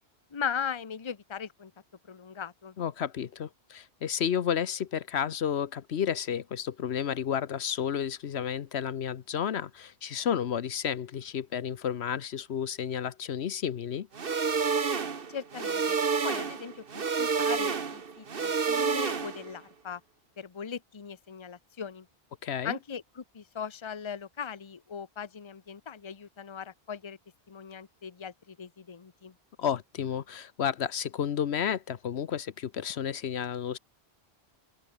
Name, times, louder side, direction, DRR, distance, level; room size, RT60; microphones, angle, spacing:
voice 1, 0.3-1.7 2.1-2.7 15.3-16.0 16.2-20.0 20.4-22.1 22.6-27.2 27.5-29.3, left 7 dB, 30° left, 0.9 m, -39 dB
voice 2, 2.8-14.1 22.4-22.8 29.6-33.8, left 8 dB, 75° left, 1.1 m, -31 dB
sound 1, 14.1-19.5, right 5 dB, 55° right, 1.5 m, -29 dB
open air
omnidirectional pair, 1.1 m